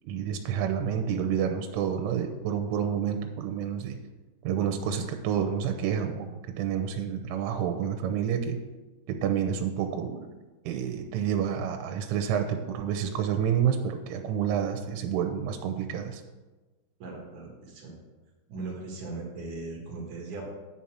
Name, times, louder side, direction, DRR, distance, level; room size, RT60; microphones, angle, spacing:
voice 1, 0.1-4.0 4.4-8.6 9.1-10.3 10.7-16.2, right 8 dB, 90° right, 5 dB, 3.1 m, -29 dB
voice 2, 17.0-18.0 18.5-20.5, right 3 dB, 55° right, -2 dB, 2.5 m, -38 dB
10.0 x 4.2 x 7.6 m, 1.2 s
omnidirectional pair, 5.5 m